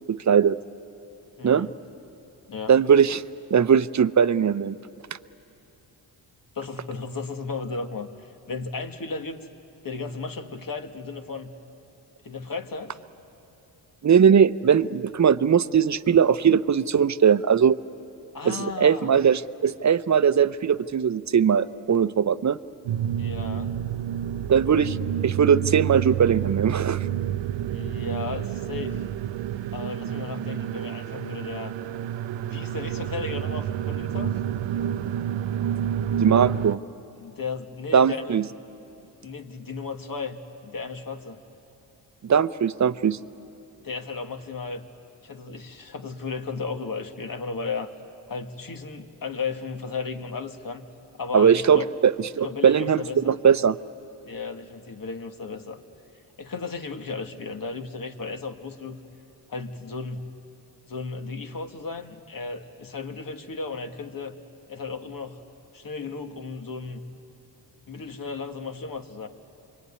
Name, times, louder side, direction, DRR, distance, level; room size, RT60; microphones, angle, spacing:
voice 1, 0.1-0.6 1.4-1.7 2.7-3.2 3.5-4.8 14.0-17.8 18.4-22.6 24.5-25.0 25.2-27.0 36.2-36.8 37.9-38.4 42.2-43.2 51.3-53.8, right 7 dB, 40° right, 14 dB, 0.7 m, -20 dB
voice 2, 1.4-1.7 2.5-2.7 6.6-9.4 9.8-11.5 12.2-13.0 18.3-19.1 23.2-23.8 27.7-29.0 29.7-31.8 32.4-34.4 37.2-38.4 39.2-41.4 43.8-44.8 45.2-47.9 48.3-50.9 51.2-51.9 52.4-53.4 54.3-55.8 56.4-59.0 59.5-60.3 60.9-64.4 64.7-65.4 65.7-67.0 67.9-69.3, left 4 dB, 45° left, 6 dB, 1.9 m, -34 dB
sound 1, 22.9-36.8, right 10 dB, 80° right, 0.7 m, -29 dB
26.0 x 23.0 x 9.8 m, 2.8 s
cardioid pair, 60°, 45 cm